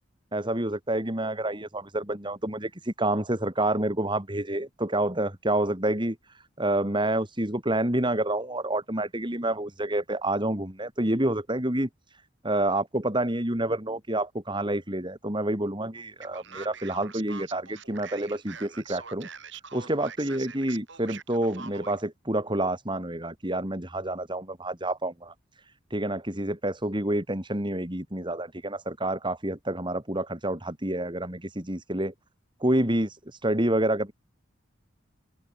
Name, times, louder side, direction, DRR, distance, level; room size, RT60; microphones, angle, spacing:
voice 1, 0.3-6.2 6.6-11.9 12.4-19.3 19.7-25.3 25.9-32.1 32.6-34.1, right 1 dB, 25° right, 3.5 m, -28 dB
Male speech man speaking, 16.2-22.0, right 6 dB, 60° right, 7.5 m, -44 dB
open air
head